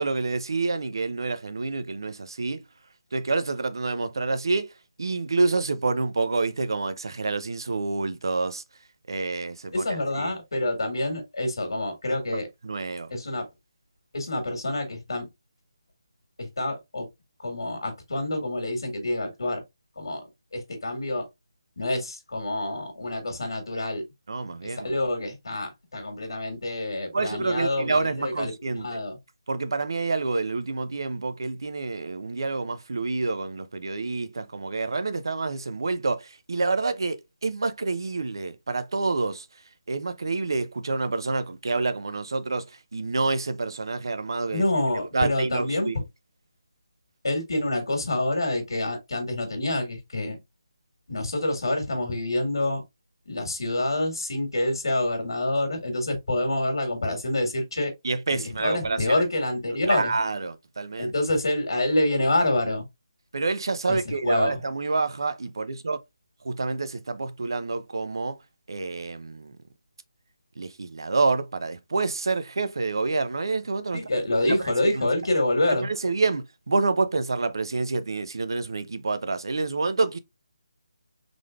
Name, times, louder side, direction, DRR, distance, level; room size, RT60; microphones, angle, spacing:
voice 1, 0.0-2.6 3.1-4.7 5.0-8.6 9.1-10.3 12.6-13.1 24.3-24.9 27.1-29.0 29.5-39.5 39.9-42.6 42.9-44.6 45.1-46.0 58.0-59.2 59.9-61.1 63.3-66.0 66.4-68.4 68.7-69.6 70.6-74.0 74.4-74.7 75.8-80.2, right 3 dB, 65° right, 0.6 m, -28 dB
voice 2, 9.7-12.5 13.1-13.4 14.1-15.3 16.4-17.1 17.4-19.6 19.9-20.2 20.5-21.3 21.8-24.0 24.6-29.2 44.5-46.0 47.2-50.4 51.1-52.8 53.2-57.9 58.3-60.1 61.0-62.8 63.9-64.6 73.9-75.9, left 1 dB, 75° left, 1.6 m, -27 dB
3.8 x 3.3 x 2.3 m
hypercardioid pair, 170°, 2 cm